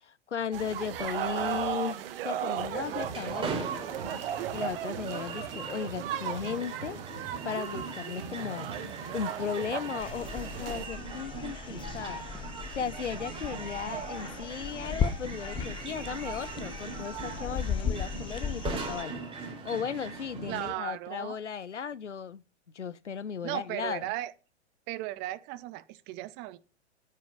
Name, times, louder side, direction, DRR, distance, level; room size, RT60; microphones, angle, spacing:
voice 1, 0.0-3.7 4.5-7.0 7.4-12.3 12.8-22.4 22.7-24.0, left 7 dB, 85° left, 0.7 m, -36 dB
sound 1, 0.5-10.9, right 10 dB, 55° right, 1.3 m, -36 dB
sound 2, 2.7-20.7, right 4 dB, 15° right, 4.1 m, -40 dB
sound 3, 10.0-19.0, left 7 dB, 15° left, 0.6 m, -36 dB
voice 2, 20.5-21.4 23.4-24.3 24.9-26.6, right 16 dB, 30° right, 0.8 m, -36 dB
9.1 x 5.5 x 6.5 m
figure-of-eight pair, 105°, 35 cm